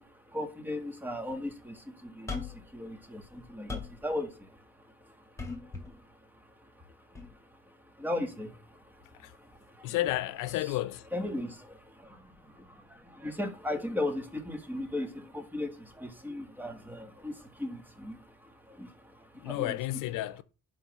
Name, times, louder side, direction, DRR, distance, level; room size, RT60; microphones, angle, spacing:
voice 1, 0.0-9.9 11.1-19.7, left 1 dB, 5° right, 1.7 m, -38 dB
sound 1, 2.3-2.7 3.2-4.0 5.4-5.9 7.2-7.3, left 4 dB, 10° left, 2.3 m, -38 dB
voice 2, 9.8-11.1 19.3-20.4, left 16 dB, 85° left, 0.6 m, -32 dB
11.5 x 3.8 x 7.4 m
cardioid pair, 130°, 31 cm